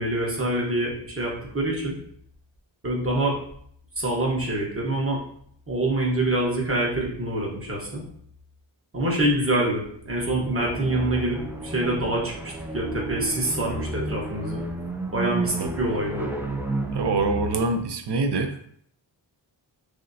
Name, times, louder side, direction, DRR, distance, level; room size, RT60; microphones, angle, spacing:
voice 1, 0.0-1.9 2.8-3.4 4.0-5.2 5.7-8.0 8.9-14.6 15.1-16.3, right 1 dB, 30° right, -3 dB, 1.1 m, -26 dB
sound 1, 10.2-17.8, right 2 dB, 5° right, 0.3 m, -32 dB
voice 2, 16.9-18.6, right 3 dB, 60° right, 7 dB, 0.6 m, -25 dB
6.2 x 2.1 x 2.7 m, 0.65 s
wide cardioid pair, 120°, 46 cm